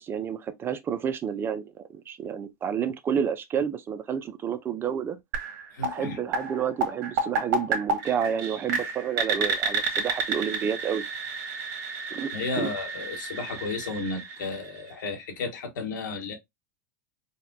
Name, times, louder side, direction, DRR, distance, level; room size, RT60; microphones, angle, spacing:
voice 1, 0.0-5.2 5.8-11.0 12.1-12.3 12.6-12.7, right 8 dB, 20° right, 0.4 m, -30 dB
sound 1, 5.3-15.1, right 4 dB, 60° right, 1.2 m, -31 dB
voice 2, 5.7-6.2 12.3-16.4, left 4 dB, 90° left, 1.3 m, -33 dB
4.0 x 2.2 x 2.6 m
supercardioid pair, 140°, 10 cm